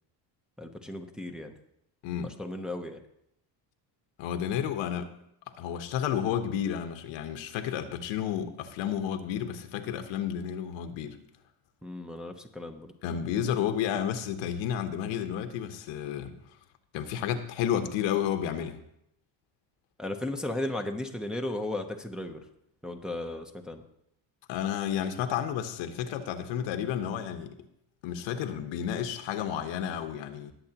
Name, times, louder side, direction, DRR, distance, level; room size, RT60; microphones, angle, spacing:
voice 1, 0.6-1.5 2.4-3.0 11.8-12.9 20.0-22.4 22.8-23.8, left 1 dB, ahead, 3 dB, 0.7 m, -35 dB
voice 2, 2.0-2.3 4.2-5.1 5.6-11.2 13.0-16.3 16.9-18.8 24.5-27.5 28.0-30.5, left 9 dB, 80° left, 7 dB, 1.2 m, -31 dB
19.5 x 7.7 x 2.9 m, 0.76 s
cardioid pair, 135°, 45 cm